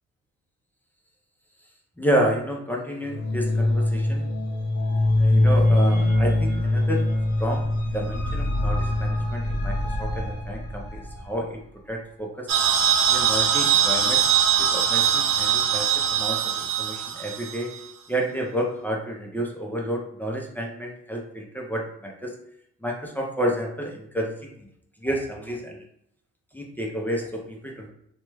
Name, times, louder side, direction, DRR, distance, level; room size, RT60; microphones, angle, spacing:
voice 1, 2.0-4.3 5.1-7.1 7.4-11.6 11.9-12.5 13.0-14.2 14.6-17.7 18.1-22.3 22.8-24.7 25.0-25.8 26.5-27.9, equal, 5° left, -1 dB, 0.5 m, -30 dB
sound 1, 3.0-11.3, left 1 dB, 55° left, 1.0 m, -23 dB
sound 2, 12.5-17.8, right 8 dB, 65° right, 0.6 m, -22 dB
3.0 x 2.3 x 3.0 m, 0.73 s
cardioid pair, 90°, 30 cm